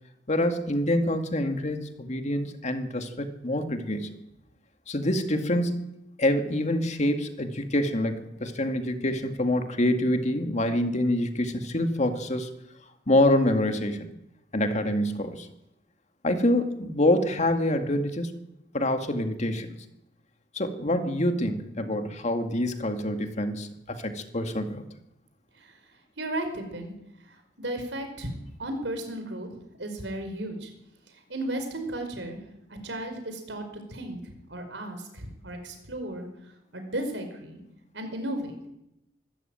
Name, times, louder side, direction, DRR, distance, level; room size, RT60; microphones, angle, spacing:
voice 1, 0.3-4.1 4.9-5.9 6.2-12.5 13.1-14.1 14.5-15.5 16.2-18.3 18.7-19.7 20.5-24.8, left 1 dB, 40° left, 6 dB, 2.2 m, -26 dB
voice 2, 26.2-26.9 27.3-29.5 29.8-30.7 31.1-32.4 32.7-33.6 33.9-36.3 36.7-37.6 37.9-38.6, right 1 dB, 90° right, 6 dB, 5.1 m, -34 dB
24.0 x 13.5 x 9.1 m, 0.86 s
head